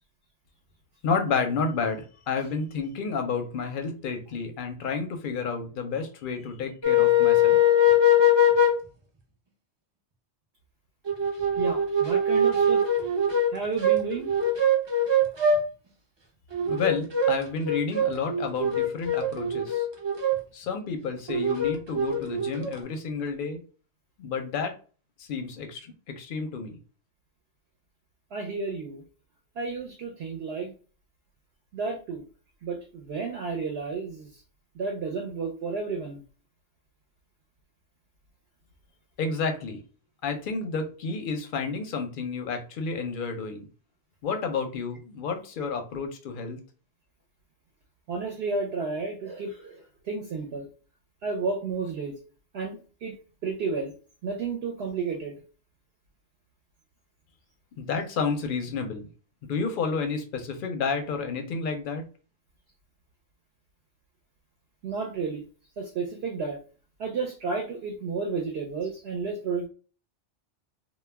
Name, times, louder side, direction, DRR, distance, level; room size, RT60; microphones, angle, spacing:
voice 1, 1.0-7.6 16.7-19.9 20.5-23.6 24.2-24.7 25.2-26.8 39.2-39.8 40.2-43.6 44.2-46.6 57.8-59.1 59.4-62.0, left 5 dB, 60° left, 5 dB, 0.6 m, -30 dB
sound 1, 6.8-8.7 11.1-13.5 13.8-15.6 16.5-17.3 17.6-20.4 21.3-22.8, left 3 dB, 45° right, 0.3 m, -22 dB
voice 2, 11.6-12.8 13.5-14.3 28.3-29.0 29.6-30.7 31.7-32.2 32.6-34.3 34.8-36.2 48.1-50.7 51.2-52.2 52.5-53.2 53.4-53.9 54.2-55.4 64.8-65.4 65.8-66.6 67.0-69.7, right 4 dB, 65° right, 2 dB, 0.7 m, -32 dB
2.2 x 2.1 x 3.2 m, 0.38 s
omnidirectional pair, 1.2 m